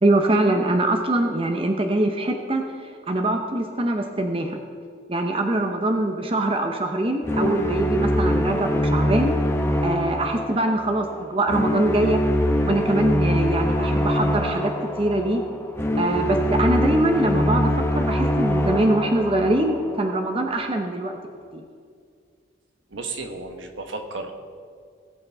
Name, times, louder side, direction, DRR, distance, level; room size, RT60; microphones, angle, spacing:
voice 1, 0.0-2.6 3.1-4.6 5.1-9.3 9.8-12.2 12.6-15.4 16.0-21.1 21.5-21.6, right 1 dB, 30° right, 4 dB, 0.7 m, -23 dB
sound 1, 7.2-20.3, equal, 15° left, 0.9 m, -24 dB
voice 2, 22.9-24.3, right 3 dB, 80° right, 4 dB, 1.3 m, -33 dB
19.0 x 8.5 x 3.5 m, 2.2 s
head